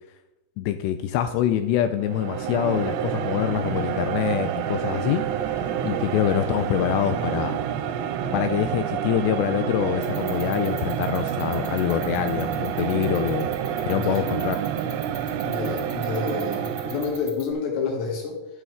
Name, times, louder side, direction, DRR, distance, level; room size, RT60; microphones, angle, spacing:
voice 1, 0.6-5.3 5.8-7.6 8.3-13.5 13.9-14.6, left 11 dB, 85° left, 9 dB, 2.5 m, -25 dB
sound 1, 2.0-17.3, right 9 dB, 80° right, 2.8 m, -28 dB
sound 2, 10.0-17.5, right 3 dB, 15° right, 3.7 m, -40 dB
voice 2, 13.8-14.3 15.4-18.4, left 5 dB, 70° left, 0 dB, 4.2 m, -29 dB
13.0 x 9.3 x 3.6 m, 0.95 s
omnidirectional pair, 5.4 m